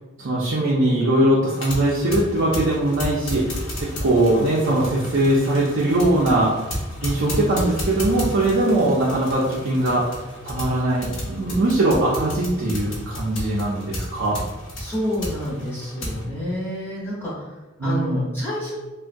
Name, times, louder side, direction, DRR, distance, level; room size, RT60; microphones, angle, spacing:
voice 1, 0.2-3.6 4.0-6.5 7.0-10.1 10.4-14.4 17.8-18.3, right 1 dB, 60° right, -6 dB, 0.5 m, -21 dB
sound 1, 1.5-16.2, left 1 dB, 70° left, 0.8 m, -32 dB
voice 2, 14.8-18.8, equal, 10° left, -8 dB, 0.9 m, -29 dB
3.5 x 2.2 x 2.5 m, 1.1 s
head